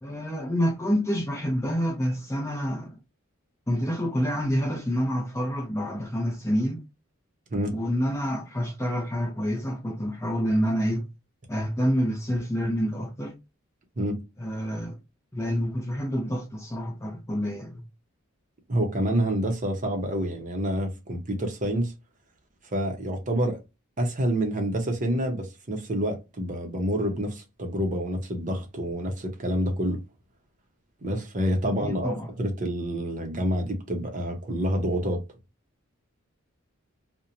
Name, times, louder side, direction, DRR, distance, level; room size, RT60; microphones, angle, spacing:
voice 1, 0.0-2.9 3.7-6.8 7.7-11.0 11.5-13.4 14.4-15.0 15.3-17.8 31.8-32.3, equal, 10° left, 0.5 m, -27 dB
voice 2, 18.7-21.9 22.7-23.6 24.0-30.0 31.0-35.2, equal, 35° right, 0.6 m, -28 dB
2.8 x 2.0 x 2.4 m
head